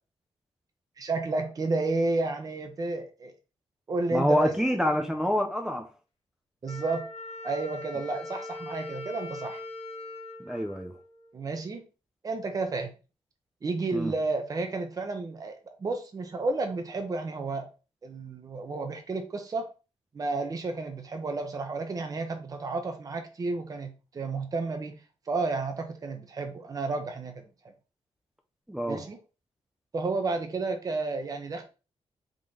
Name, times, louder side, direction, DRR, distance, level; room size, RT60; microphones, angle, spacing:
voice 1, 1.0-3.3 3.9-4.5 6.6-7.1 7.4-9.6 11.3-11.8 12.2-12.9 13.6-17.7 18.0-19.7 20.1-25.0 25.3-27.4 28.8-29.2 29.9-31.6, right 3 dB, 35° right, 0.8 m, -31 dB
voice 2, 4.1-5.9 10.5-10.9 13.9-14.1 28.7-29.0, equal, 5° right, 0.5 m, -26 dB
Wind instrument woodwind instrument, 6.7-11.5, left 2 dB, 75° left, 1.4 m, -41 dB
3.7 x 3.1 x 3.8 m
wide cardioid pair, 125°, 11 cm